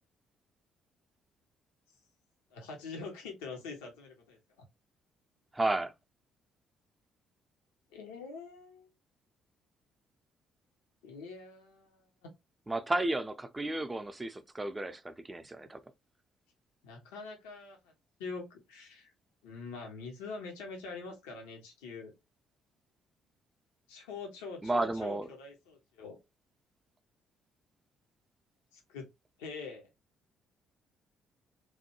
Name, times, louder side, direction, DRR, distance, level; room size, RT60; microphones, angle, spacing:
voice 1, 2.5-4.4 7.9-8.9 11.0-12.3 16.8-17.9 18.2-19.1 19.4-22.1 23.9-26.2 28.7-29.1 29.4-29.9, left 4 dB, 80° left, 0.6 m, -44 dB
voice 2, 5.5-5.9 12.7-15.8 24.6-25.3, right 2 dB, 20° right, 0.5 m, -32 dB
3.1 x 2.2 x 2.8 m
hypercardioid pair, 45°, 0 cm